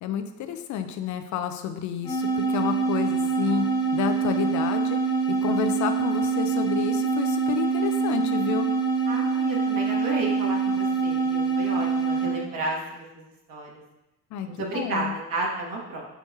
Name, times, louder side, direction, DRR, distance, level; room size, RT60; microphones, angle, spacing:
voice 1, 0.0-3.6 3.9-5.0 5.4-8.7 14.3-14.5 14.7-15.1, left 8 dB, 35° left, 8 dB, 0.7 m, -30 dB
sound 1, 2.0-12.4, right 5 dB, 10° left, 0.8 m, -25 dB
voice 2, 9.1-13.7 14.4-16.0, right 2 dB, 40° right, -2 dB, 1.6 m, -32 dB
8.0 x 4.5 x 2.8 m, 0.94 s
figure-of-eight pair, 60°, 49 cm